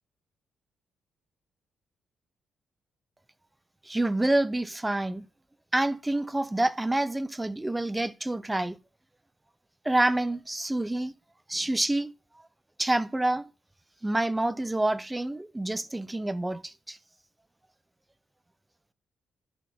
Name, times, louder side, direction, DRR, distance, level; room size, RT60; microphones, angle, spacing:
voice 1, 3.8-5.3 5.7-8.8 9.8-11.1 11.5-12.1 12.8-13.4 14.0-17.0, right 1 dB, 10° right, 0.6 m, -27 dB
14.0 x 5.6 x 3.6 m
cardioid pair, 115°, 0 cm